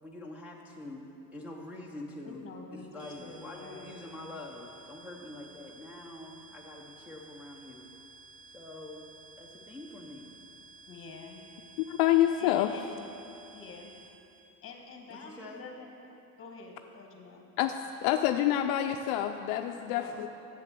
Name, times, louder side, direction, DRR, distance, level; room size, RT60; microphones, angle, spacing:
voice 1, 0.0-7.9 8.5-9.1 9.4-10.3 15.1-15.6, left 1 dB, 5° right, -4 dB, 0.7 m, -45 dB
voice 2, 2.2-3.9 10.9-11.4 12.4-12.9 13.5-13.9 14.6-17.4 19.9-20.2, left 4 dB, 30° left, 2 dB, 1.6 m, -47 dB
sound 1, 3.0-14.4, right 3 dB, 85° right, 2.0 m, -54 dB
voice 3, 11.8-12.7 17.6-17.7 18.0-20.3, left 12 dB, 60° left, 6 dB, 0.5 m, -27 dB
7.6 x 7.6 x 7.5 m, 2.9 s
supercardioid pair, 120°, 46 cm